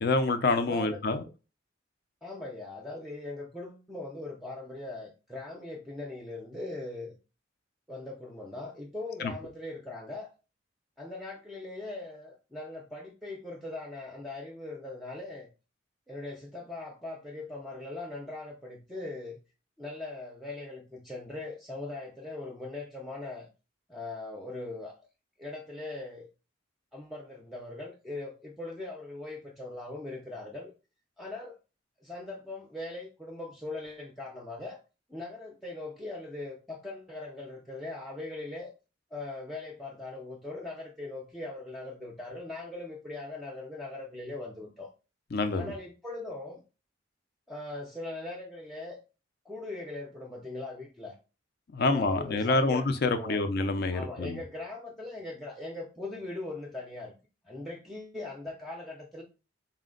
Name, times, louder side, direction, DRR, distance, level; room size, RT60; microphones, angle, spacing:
voice 1, 0.0-1.2 9.2-9.3 45.3-45.7 51.7-54.4, left 3 dB, 55° left, 0.5 m, -27 dB
voice 2, 0.7-1.0 2.2-7.1 7.9-10.3 11.0-15.5 16.1-19.4 19.8-23.5 23.9-24.9 25.4-26.3 26.9-30.7 31.2-31.6 32.0-34.8 35.1-38.7 39.1-44.9 45.5-46.6 47.5-49.0 49.5-51.2 51.9-53.5 53.9-57.1 57.4-59.2, left 2 dB, ahead, 0.5 m, -40 dB
4.2 x 2.1 x 3.7 m
head